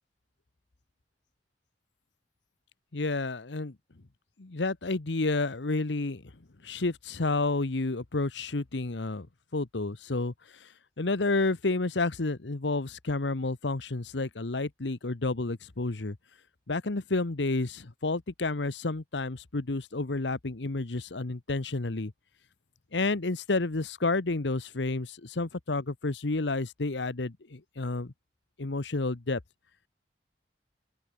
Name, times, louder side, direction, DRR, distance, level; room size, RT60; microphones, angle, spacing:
voice 1, 2.9-3.8 4.4-6.3 6.6-9.3 9.5-10.7 11.0-16.2 16.7-22.1 22.9-28.1 28.6-29.4, left 3 dB, 80° left, 1.1 m, -30 dB
open air
head